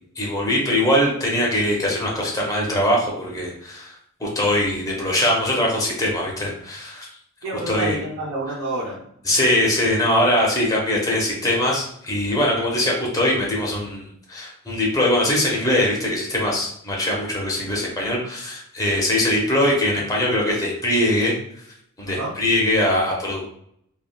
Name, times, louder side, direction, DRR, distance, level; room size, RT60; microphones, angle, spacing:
voice 1, 0.2-3.9 4.2-7.1 7.7-8.0 9.3-21.3 22.0-23.4, left 1 dB, 15° left, -3 dB, 0.7 m, -22 dB
voice 2, 7.4-9.0 19.3-19.4 22.0-22.3, right 1 dB, 70° right, -5 dB, 0.6 m, -28 dB
3.4 x 2.1 x 2.2 m, 0.68 s
head